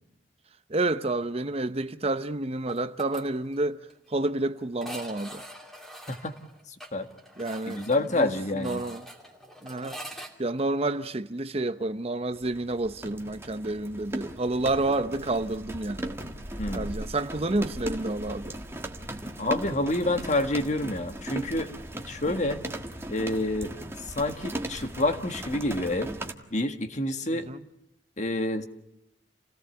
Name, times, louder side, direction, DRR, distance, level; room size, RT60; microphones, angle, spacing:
voice 1, 0.7-3.8 4.1-5.4 7.4-7.8 8.2-9.0 9.6-10.0 10.4-16.2 16.7-18.6 27.3-27.6, right 2 dB, 35° right, 0.8 m, -29 dB
sound 1, 2.7-3.2 3.5-3.6 3.9-4.0 4.7-10.3, right 1 dB, ahead, 2.9 m, -44 dB
voice 2, 7.7-8.8 16.6-16.9 19.4-21.7 22.1-22.6 23.1-23.7 24.1-26.1 26.5-27.5 28.2-28.7, left 2 dB, 40° left, 1.7 m, -28 dB
sound 2, 12.3-26.3, right 1 dB, 15° right, 1.6 m, -38 dB
28.5 x 17.5 x 7.9 m
head